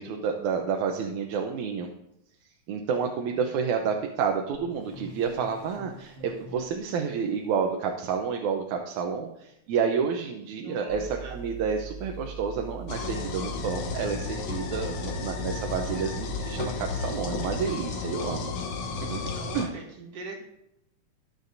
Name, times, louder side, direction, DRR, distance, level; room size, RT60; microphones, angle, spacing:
voice 1, 0.0-1.9 2.7-18.5 18.9-19.2 19.5-19.7, right 6 dB, 80° right, 2 dB, 2.2 m, -30 dB
voice 2, 2.9-3.5 10.6-11.4 17.0-17.6 19.3-20.4, right 3 dB, 55° right, 0 dB, 2.8 m, -43 dB
sound 1, 4.5-7.3, left 1 dB, 40° right, 1.2 m, -47 dB
sound 2, 10.9-17.7, right 4 dB, 55° left, 3.4 m, -41 dB
sound 3, 12.9-19.7, left 5 dB, 70° left, 2.3 m, -33 dB
20.5 x 6.9 x 2.7 m, 0.83 s
omnidirectional pair, 3.4 m